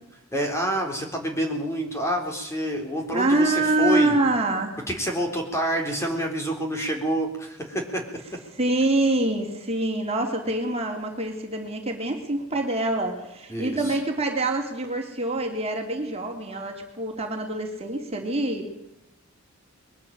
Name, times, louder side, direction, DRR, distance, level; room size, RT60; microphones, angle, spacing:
voice 1, 0.3-4.1 4.9-8.0 13.5-13.9, right 1 dB, 15° left, 2 dB, 3.9 m, -27 dB
voice 2, 3.1-4.8 8.6-18.7, right 2 dB, 30° right, 2 dB, 3.2 m, -25 dB
22.0 x 13.0 x 9.0 m, 0.86 s
head